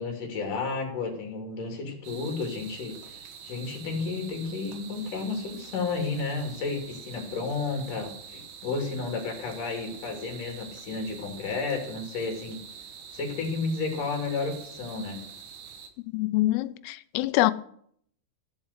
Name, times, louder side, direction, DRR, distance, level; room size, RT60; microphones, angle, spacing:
voice 1, 0.0-12.6 13.1-15.2, left 4 dB, 45° left, 3.9 m, -32 dB
sound 1, 2.0-15.9, right 7 dB, 70° right, 3.9 m, -45 dB
voice 2, 16.0-17.5, left 17 dB, 90° left, 3.4 m, -25 dB
15.0 x 7.2 x 8.1 m
omnidirectional pair, 5.8 m